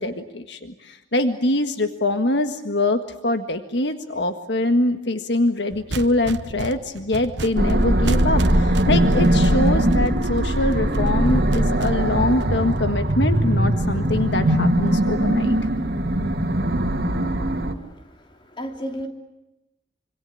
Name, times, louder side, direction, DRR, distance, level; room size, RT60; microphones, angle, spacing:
voice 1, 0.0-15.6, left 1 dB, 75° left, 7 dB, 1.6 m, -24 dB
sound 1, 5.7-13.1, right 2 dB, 80° right, 1.1 m, -34 dB
sound 2, 7.6-17.7, right 1 dB, 55° right, 2.8 m, -20 dB
voice 2, 17.7-19.1, equal, 30° left, 3 dB, 3.2 m, -34 dB
26.0 x 26.0 x 8.5 m, 0.93 s
head